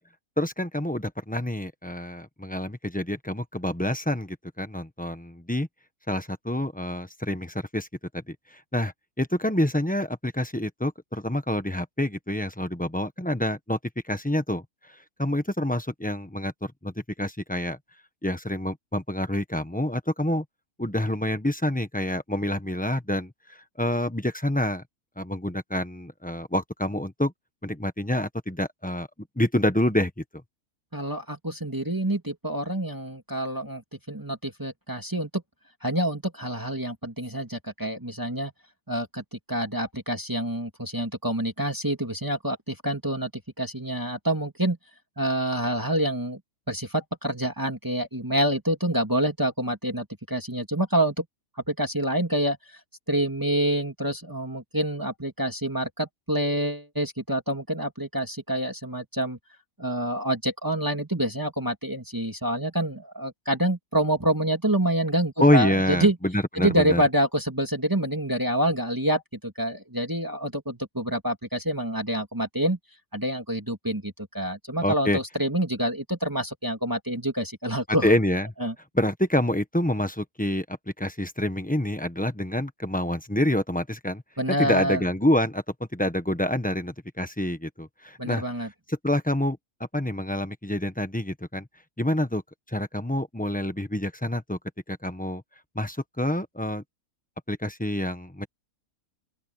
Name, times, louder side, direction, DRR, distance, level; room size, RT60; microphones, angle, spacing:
voice 1, 0.4-5.7 6.1-7.9 8.1-8.3 8.7-13.8 14.1-14.6 15.2-16.9 17.2-17.8 18.2-20.4 20.8-23.3 23.8-24.8 25.2-27.3 27.6-29.1 29.4-30.1 65.4-67.0 74.8-75.2 78.0-78.5 78.9-80.6 81.0-84.2 84.6-85.6 85.9-88.4 88.9-89.6 89.9-91.7 92.0-92.4 92.7-94.6 94.9-95.4 95.7-96.8 97.5-98.5, left 1 dB, 5° left, 1.0 m, -27 dB
voice 2, 30.9-33.8 34.1-35.4 35.8-38.5 38.9-44.8 45.2-46.4 46.7-51.2 51.7-52.6 53.1-59.4 59.8-66.2 66.6-72.8 73.1-78.1 78.6-78.7 84.4-85.0 88.2-88.7, right 1 dB, 15° right, 2.4 m, -27 dB
open air
omnidirectional pair, 1.6 m